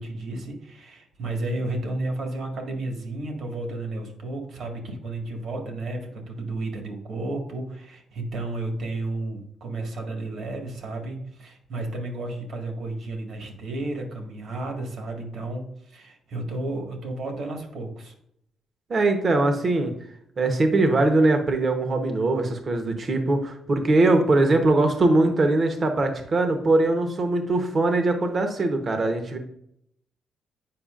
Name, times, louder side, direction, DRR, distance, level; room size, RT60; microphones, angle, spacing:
voice 1, 0.0-18.1, right 2 dB, 65° right, 3 dB, 1.7 m, -32 dB
voice 2, 18.9-19.9 20.4-29.4, right 2 dB, 40° right, 6 dB, 1.0 m, -21 dB
8.6 x 4.9 x 2.5 m, 0.72 s
cardioid pair, 90°, 0 cm